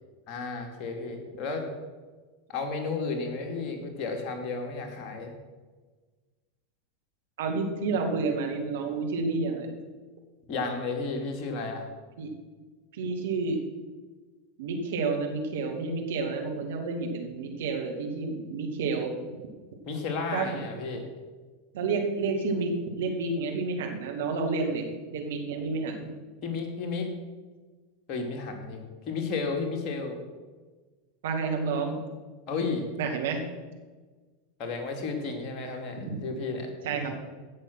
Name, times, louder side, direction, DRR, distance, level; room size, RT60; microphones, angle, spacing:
voice 1, 0.3-1.6 2.5-5.3 10.5-11.9 19.9-21.0 26.4-27.1 28.1-30.2 32.5-32.9 34.6-36.7, left 4 dB, 40° left, 3 dB, 2.6 m, -32 dB
voice 2, 7.4-9.8 12.2-12.3 13.0-13.6 14.6-19.1 20.3-20.5 21.7-22.7 23.0-26.1 31.2-32.0 33.0-33.4 36.0-36.2 36.8-37.1, right 4 dB, 65° right, 2 dB, 2.2 m, -30 dB
16.5 x 6.4 x 6.3 m, 1.3 s
figure-of-eight pair, 85°, 0 cm